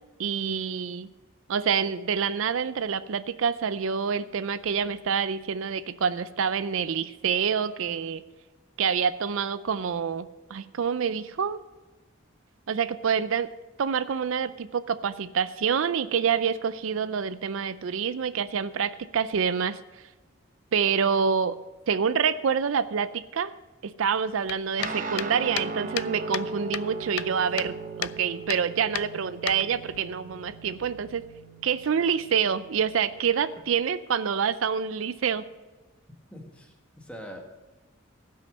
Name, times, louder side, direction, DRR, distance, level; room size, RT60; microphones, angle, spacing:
voice 1, 0.2-1.1 1.5-8.2 8.8-11.6 12.7-13.5 13.8-19.8 20.7-21.6 21.9-23.5 23.8-31.2 31.6-35.4, right 7 dB, 70° right, 14 dB, 0.4 m, -27 dB
sound 1, 24.5-26.5 26.7-27.7 28.0-28.2 28.5-28.6 29.0-30.0, left 13 dB, 85° left, 0.3 m, -33 dB
Guitar, 24.8-33.6, right 3 dB, 40° right, 1.0 m, -38 dB
voice 2, 36.3-37.4, equal, 5° left, 1 dB, 1.5 m, -43 dB
16.0 x 6.3 x 5.3 m, 1.2 s
head